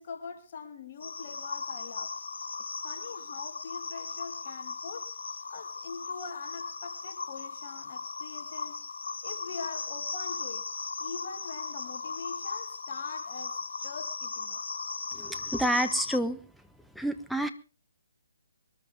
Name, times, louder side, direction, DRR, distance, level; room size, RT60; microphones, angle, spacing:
voice 1, 0.0-2.1 2.7-5.1 5.5-8.8 9.2-10.7 11.0-14.6, left 5 dB, 45° left, 4 dB, 2.7 m, -43 dB
sound 1, 1.0-16.2, left 4 dB, 70° left, 0.8 m, -37 dB
voice 2, 15.1-16.4 16.9-17.5, right 1 dB, ahead, 7 dB, 1.1 m, -29 dB
23.5 x 13.5 x 3.5 m, 0.36 s
figure-of-eight pair, 145°, 0 cm